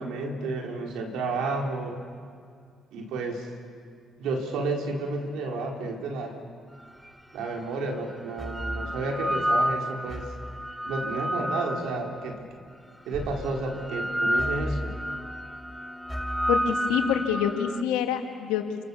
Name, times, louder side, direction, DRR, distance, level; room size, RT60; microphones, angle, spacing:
voice 1, 0.0-2.0 2.9-3.5 4.2-6.3 7.3-10.3 10.8-12.5 13.1-14.9, right 3 dB, 80° right, 1 dB, 4.5 m, -31 dB
sound 1, 7.1-7.2 8.1-12.4 13.1-17.8, equal, ahead, 0.9 m, -30 dB
voice 2, 16.5-18.6, left 9 dB, 90° left, 4 dB, 2.5 m, -26 dB
29.0 x 27.0 x 7.3 m, 2.2 s
supercardioid pair, 60°, 0 cm